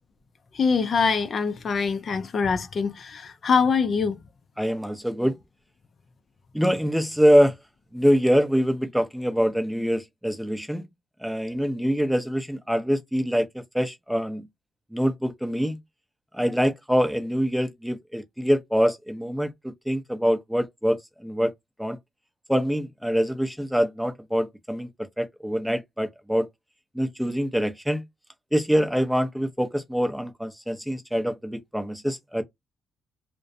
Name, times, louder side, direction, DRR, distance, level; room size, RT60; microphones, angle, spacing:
voice 1, 0.5-4.2, left 5 dB, 45° left, 0.4 m, -24 dB
voice 2, 4.6-5.3 6.5-7.5 7.9-10.9 11.2-14.4 14.9-15.8 16.3-21.5 21.8-22.0 22.5-24.9 25.2-26.5 26.9-28.0 28.5-32.4, equal, ahead, 0.5 m, -24 dB
2.4 x 2.1 x 2.4 m
cardioid pair, 90°, 0 cm